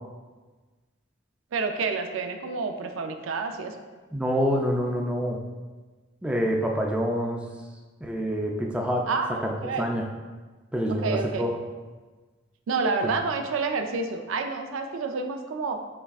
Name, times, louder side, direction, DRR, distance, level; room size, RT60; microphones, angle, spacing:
voice 1, 1.5-3.8 9.1-9.9 11.0-11.5 12.7-15.8, right 4 dB, 85° right, 5 dB, 0.4 m, -29 dB
voice 2, 4.1-5.4 6.2-7.4 8.0-9.1 9.4-10.0 10.7-11.5 13.0-13.1, equal, 5° right, 0 dB, 0.3 m, -26 dB
5.6 x 3.4 x 2.3 m, 1.3 s
head